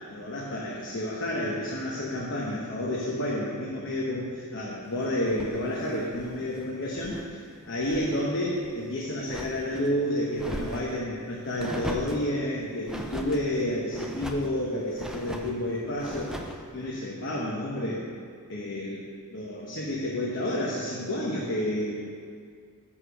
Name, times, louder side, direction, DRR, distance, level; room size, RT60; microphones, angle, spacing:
voice 1, 0.1-7.2 7.7-16.3 16.7-18.0 18.5-19.0 19.3-22.0, left 1 dB, 60° left, -4 dB, 1.0 m, -30 dB
sound 1, 5.2-7.3 7.6-8.2 8.6-9.9 10.3-11.0 11.6-12.3 12.9-13.4 13.9-14.5 14.9-15.6 16.0-16.6, equal, 5° right, 0.5 m, -39 dB
7.4 x 6.5 x 5.8 m, 2.1 s
head